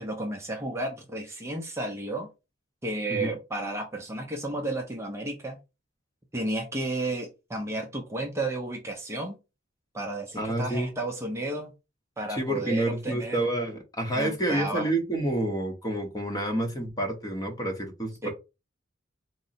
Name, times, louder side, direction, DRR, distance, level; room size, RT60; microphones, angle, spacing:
voice 1, 0.0-2.3 2.8-5.6 6.3-9.4 9.9-11.7 12.2-13.4 14.1-14.9 18.2-18.3, right 2 dB, 15° right, 0.5 m, -32 dB
voice 2, 10.4-10.9 12.3-18.3, right 1 dB, 20° left, 0.7 m, -29 dB
3.8 x 2.0 x 4.0 m
head